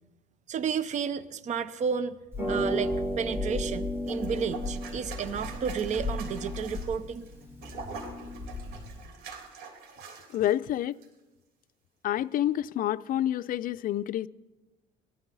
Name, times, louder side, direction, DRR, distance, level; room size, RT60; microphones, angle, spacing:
voice 1, 0.5-2.2 2.5-7.3, right 7 dB, 45° right, 0.7 m, -32 dB
Harp, 2.3-9.1, left 1 dB, 15° right, 6.7 m, -34 dB
sound 1, 4.1-10.6 10.9-11.1, right 5 dB, 85° right, 3.7 m, -44 dB
voice 2, 10.3-11.0 12.0-14.3, left 12 dB, 55° left, 0.5 m, -28 dB
21.0 x 13.5 x 4.1 m
cardioid pair, 110°, 17 cm